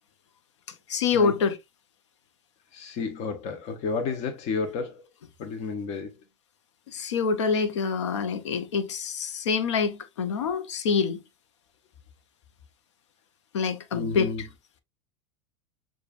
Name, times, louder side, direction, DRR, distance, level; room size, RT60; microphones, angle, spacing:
voice 1, 0.9-1.6 6.9-11.2 13.5-14.5, left 5 dB, 80° left, 0.7 m, -26 dB
voice 2, 2.7-5.0 5.4-6.1 13.9-14.4, left 4 dB, 50° left, 0.8 m, -31 dB
6.7 x 2.4 x 2.4 m
hypercardioid pair, 95°, 15 cm